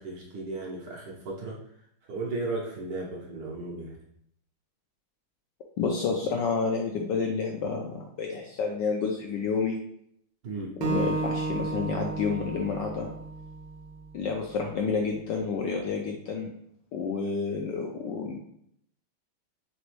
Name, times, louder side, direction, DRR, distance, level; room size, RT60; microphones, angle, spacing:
voice 1, 0.0-1.6 2.1-4.0 10.4-10.7, right 2 dB, 60° right, -3 dB, 1.3 m, -35 dB
voice 2, 5.8-9.8 10.8-13.1 14.1-16.5 16.9-18.4, left 5 dB, 75° left, 1 dB, 1.0 m, -29 dB
Acoustic guitar, 10.8-14.1, right 4 dB, 90° right, 1.6 m, -32 dB
4.1 x 3.4 x 3.1 m, 0.71 s
omnidirectional pair, 2.3 m